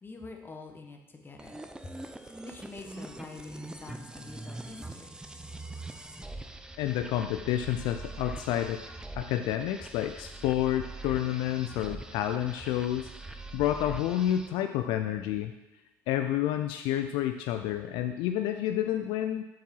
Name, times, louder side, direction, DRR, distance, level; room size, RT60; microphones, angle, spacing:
voice 1, 0.0-2.0 2.4-5.1, left 3 dB, 25° left, 3 dB, 1.3 m, -46 dB
sound 1, 1.4-14.6, right 2 dB, 10° right, 0.6 m, -43 dB
voice 2, 6.8-8.8 9.1-15.5 16.1-19.4, left 12 dB, 70° left, 7 dB, 0.4 m, -29 dB
7.6 x 4.6 x 5.5 m, 1.0 s
hypercardioid pair, 75°, 8 cm